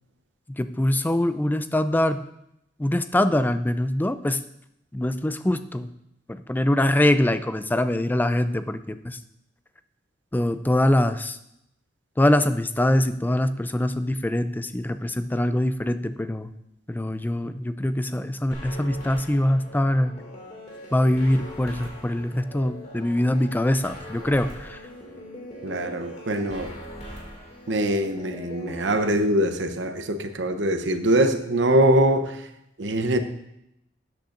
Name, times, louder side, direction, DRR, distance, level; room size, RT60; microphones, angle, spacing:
voice 1, 0.5-2.2 2.8-4.4 4.9-5.9 6.3-9.2 10.3-11.4 12.2-16.5 16.9-20.1 20.9-24.8, left 1 dB, 10° left, 11 dB, 0.4 m, -23 dB
sound 1, 18.5-29.2, left 1 dB, 40° left, 2.4 m, -41 dB
voice 2, 25.6-26.8 27.7-32.5 32.8-33.2, right 1 dB, 75° right, 7 dB, 0.8 m, -23 dB
13.0 x 8.5 x 2.6 m, 0.82 s
head